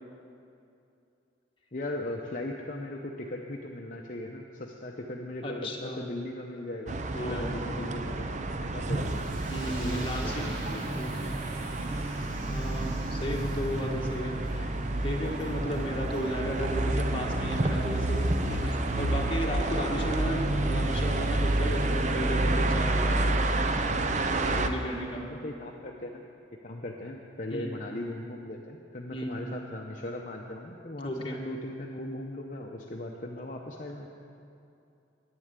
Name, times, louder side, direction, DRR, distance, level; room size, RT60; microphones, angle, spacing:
voice 1, 1.7-9.2 9.6-11.0 11.3-11.4 25.3-26.2 26.6-34.1, left 1 dB, 40° left, 0 dB, 0.8 m, -38 dB
voice 2, 5.4-6.0 7.1-7.5 9.5-10.6 10.9-11.4 11.8-11.9 12.4-14.7 15.0-23.4 24.5-25.2 27.5-27.7 29.1-29.4 31.0-31.4, equal, 25° left, -1 dB, 1.6 m, -34 dB
sound 1, 6.9-24.7, right 2 dB, 40° right, 0.6 m, -29 dB
sound 2, 8.9-13.8, right 1 dB, 75° right, 2.9 m, -45 dB
sound 3, 11.1-22.4, equal, 5° right, 1.6 m, -48 dB
11.0 x 9.7 x 8.2 m, 2.6 s
head